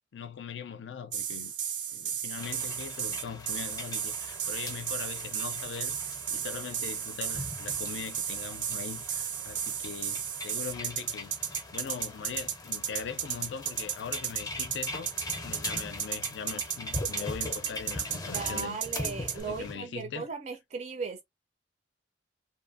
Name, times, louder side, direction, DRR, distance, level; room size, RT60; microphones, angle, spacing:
voice 1, 0.1-1.5 1.9-11.4 11.7-15.1 15.4-18.8 19.2-20.3, left 6 dB, 75° left, 0.4 m, -41 dB
sound 1, 1.1-19.4, right 9 dB, 90° right, 0.6 m, -34 dB
sound 2, 2.4-19.7, left 2 dB, 20° left, 0.5 m, -42 dB
voice 2, 18.3-21.2, right 5 dB, 40° right, 0.4 m, -37 dB
2.7 x 2.5 x 2.5 m
head